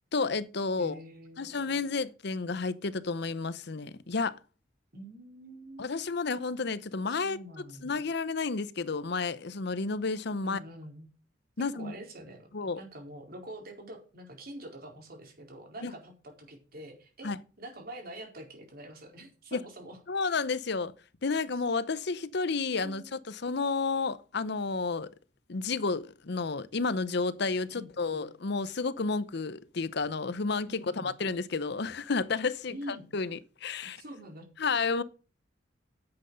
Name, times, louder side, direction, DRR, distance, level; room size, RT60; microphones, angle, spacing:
voice 1, 0.1-1.0 1.4-4.4 5.8-10.6 11.6-11.9 12.5-12.8 15.8-15.9 17.2-17.4 19.5-19.6 20.1-20.9 21.2-25.1 25.5-34.0 34.6-35.0, left 4 dB, 60° left, 0.7 m, -31 dB
voice 2, 0.8-1.9 4.9-5.9 7.1-8.0 10.4-11.1 11.7-12.5 12.8-17.3 17.6-20.0 21.5-21.6 22.7-23.1 27.7-28.2 30.6-31.2 32.7-33.0 33.9-34.5, right 1 dB, 50° right, 4.4 m, -46 dB
10.5 x 7.9 x 6.5 m
head